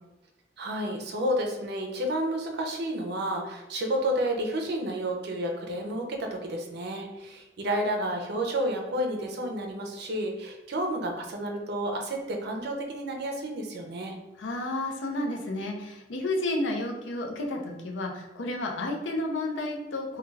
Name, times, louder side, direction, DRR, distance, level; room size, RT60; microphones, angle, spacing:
voice 1, 0.6-14.2, right 1 dB, 60° right, 2 dB, 0.5 m, -31 dB
voice 2, 14.4-20.2, left 2 dB, 70° left, 1 dB, 0.5 m, -31 dB
2.3 x 2.2 x 3.2 m, 1.1 s
head